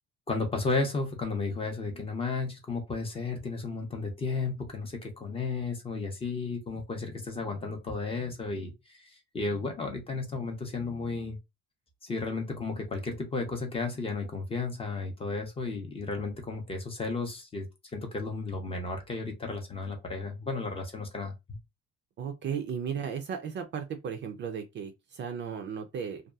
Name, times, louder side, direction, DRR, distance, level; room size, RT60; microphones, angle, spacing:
voice 1, 0.3-11.4 12.0-21.3, left 3 dB, 20° left, 0.5 m, -33 dB
voice 2, 22.2-26.2, right 7 dB, 40° right, 0.4 m, -35 dB
2.7 x 2.3 x 2.3 m
cardioid pair, 160°, 29 cm